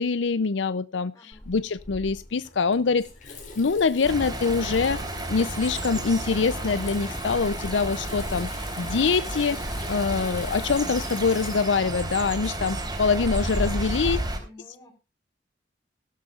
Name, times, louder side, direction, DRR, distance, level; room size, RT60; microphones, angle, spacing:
voice 1, 0.0-5.0 5.3-8.5 8.8-14.2, left 5 dB, 80° left, 0.6 m, -25 dB
voice 2, 1.1-1.5 13.3-14.0 14.4-15.0, left 1 dB, 20° left, 4.7 m, -50 dB
Water tap faucet / Sink (filling or washing), 1.3-14.0, left 2 dB, 45° left, 3.8 m, -42 dB
sound 1, 4.0-14.4, right 1 dB, 25° right, 3.7 m, -32 dB
17.0 x 12.5 x 2.4 m
head